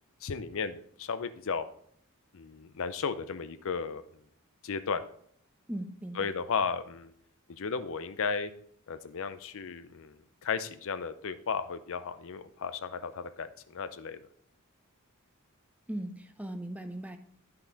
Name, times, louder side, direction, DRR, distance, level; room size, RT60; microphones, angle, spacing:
voice 1, 0.2-1.7 2.3-4.0 4.6-5.0 6.2-7.1 7.5-8.5 8.9-10.2 10.4-14.2, left 5 dB, 65° left, 12 dB, 0.6 m, -34 dB
voice 2, 5.7-6.3 15.9-17.2, right 1 dB, 5° right, 8 dB, 0.6 m, -38 dB
10.5 x 5.8 x 4.0 m, 0.63 s
head